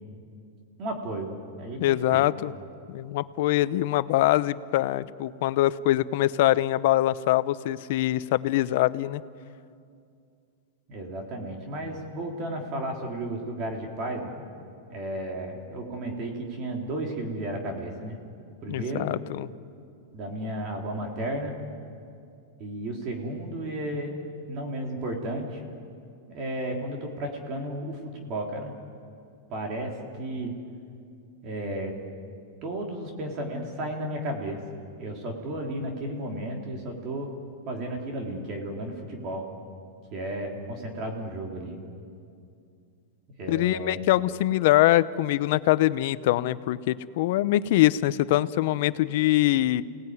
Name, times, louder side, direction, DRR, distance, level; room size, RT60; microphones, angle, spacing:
voice 1, 0.8-2.2 10.9-14.4 14.9-18.2 18.6-19.1 20.1-21.6 22.6-24.1 24.5-25.6 26.3-28.7 29.5-30.5 31.4-32.0 32.6-34.6 35.0-37.3 37.7-39.5 40.1-41.8 43.4-44.0, right 1 dB, 35° right, 1 dB, 3.3 m, -33 dB
voice 2, 1.8-2.5 2.9-9.2 18.7-19.5 43.5-49.8, left 15 dB, 55° left, 16 dB, 0.8 m, -23 dB
29.5 x 18.5 x 9.5 m, 2.4 s
supercardioid pair, 155°, 0 cm